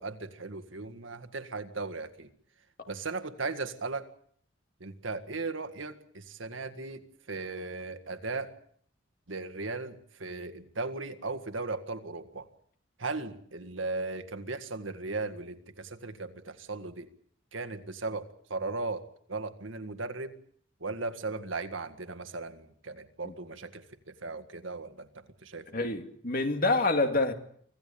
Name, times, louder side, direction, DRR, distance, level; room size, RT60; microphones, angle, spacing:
voice 1, 0.0-2.3 2.9-4.1 4.8-8.5 9.3-12.5 13.0-17.1 17.5-20.4 20.8-25.9, right 3 dB, 80° right, 1.9 m, -37 dB
voice 2, 25.7-27.3, left 2 dB, 50° left, 2.4 m, -27 dB
25.0 x 16.0 x 8.6 m
head